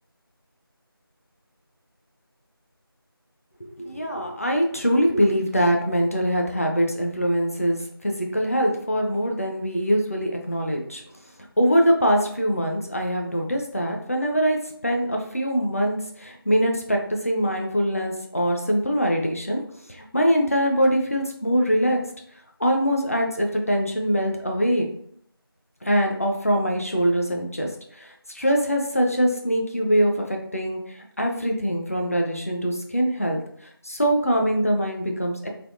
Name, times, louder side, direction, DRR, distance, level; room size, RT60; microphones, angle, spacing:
voice 1, 3.6-11.0 11.6-19.6 19.9-22.0 22.6-24.9 25.8-35.5, equal, 35° left, 1 dB, 0.5 m, -23 dB
3.4 x 2.9 x 2.4 m, 0.64 s
figure-of-eight pair, 175°, 13 cm